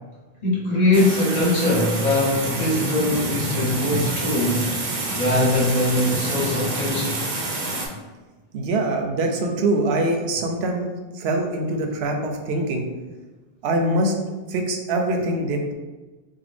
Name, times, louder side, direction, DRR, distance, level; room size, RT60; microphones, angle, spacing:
voice 1, 0.4-4.7 5.1-7.2, left 1 dB, 45° left, -6 dB, 0.9 m, -21 dB
sound 1, 0.9-7.9, right 2 dB, 50° right, 0.6 m, -27 dB
voice 2, 8.5-10.9 11.1-12.9 13.6-14.1 14.5-15.7, right 1 dB, 85° right, 3 dB, 0.8 m, -23 dB
3.6 x 2.1 x 3.3 m, 1.2 s
omnidirectional pair, 1.0 m